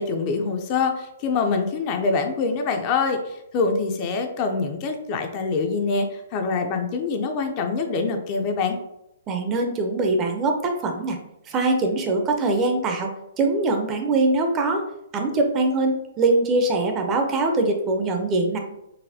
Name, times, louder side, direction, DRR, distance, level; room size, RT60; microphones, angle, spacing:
voice 1, 0.0-8.8, left 4 dB, 35° left, 5 dB, 0.4 m, -25 dB
voice 2, 9.3-11.2 11.5-14.8 15.1-18.6, right 2 dB, 20° right, 3 dB, 0.5 m, -22 dB
4.0 x 2.1 x 2.7 m, 0.84 s
hypercardioid pair, 145°, 0 cm